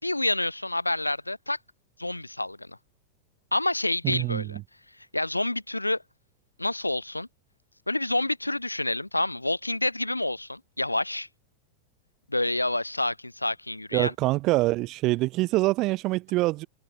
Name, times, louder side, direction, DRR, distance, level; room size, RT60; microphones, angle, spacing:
voice 1, 0.0-1.6 2.0-2.8 3.5-4.6 5.1-6.0 6.6-7.3 7.9-11.3 12.3-14.1, left 2 dB, 85° left, 3.4 m, -28 dB
voice 2, 4.0-4.6 13.9-16.7, right 19 dB, 40° right, 1.3 m, -25 dB
figure-of-eight pair, 90°, 0 cm